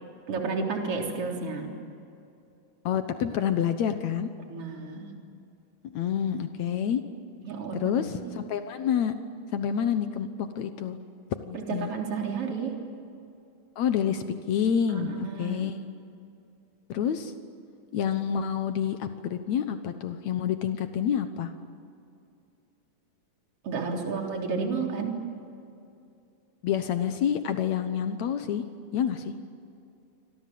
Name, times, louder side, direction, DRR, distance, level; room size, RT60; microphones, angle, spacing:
voice 1, 0.3-1.7 4.5-5.1 7.4-7.9 8.2-8.3 11.8-12.8 14.9-15.8 23.6-25.2, right 4 dB, 35° right, 1 dB, 4.2 m, -31 dB
voice 2, 2.8-4.3 5.8-7.0 7.8-9.1 9.5-10.3 10.5-11.0 11.4-11.9 13.8-15.8 16.9-17.3 17.9-21.5 26.6-28.6 28.9-29.4, left 8 dB, 85° left, 8 dB, 1.5 m, -28 dB
28.5 x 25.5 x 7.7 m, 2.6 s
omnidirectional pair, 4.9 m